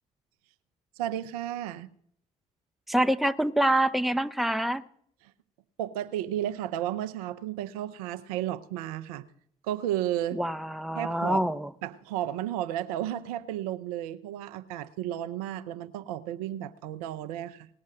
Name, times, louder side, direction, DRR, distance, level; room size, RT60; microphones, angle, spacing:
voice 1, 1.0-1.9 5.2-5.3 5.8-9.3 9.6-10.4 10.9-11.5 11.8-17.7, right 12 dB, 80° right, 0.6 m, -33 dB
voice 2, 2.9-4.8 10.3-11.7, right 1 dB, ahead, 0.7 m, -26 dB
18.5 x 6.4 x 7.3 m
hypercardioid pair, 50°, 19 cm